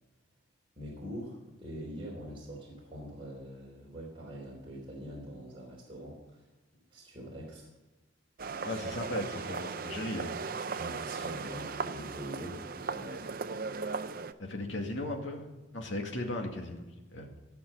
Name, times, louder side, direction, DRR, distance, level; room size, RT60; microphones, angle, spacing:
voice 1, 0.8-6.4 6.9-7.7 10.8-13.3, equal, 25° right, -5 dB, 3.7 m, -44 dB
sound 1, 8.4-14.3, right 4 dB, 50° right, 0.6 m, -37 dB
voice 2, 8.6-10.3 14.4-15.5 15.7-17.3, left 1 dB, 80° left, 2 dB, 2.2 m, -36 dB
17.5 x 6.0 x 8.7 m, 1.1 s
head